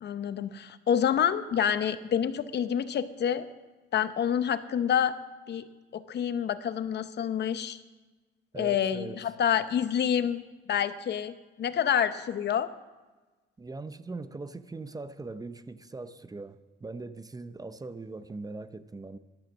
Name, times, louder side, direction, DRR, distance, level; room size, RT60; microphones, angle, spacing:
voice 1, 0.0-3.5 3.9-5.2 5.5-5.6 5.9-7.8 8.6-10.4 10.7-12.7, left 9 dB, 60° left, 0.8 m, -28 dB
voice 2, 8.5-9.2 13.6-19.2, right 3 dB, 20° right, 0.6 m, -40 dB
12.0 x 12.0 x 7.3 m
cardioid pair, 90°, 20 cm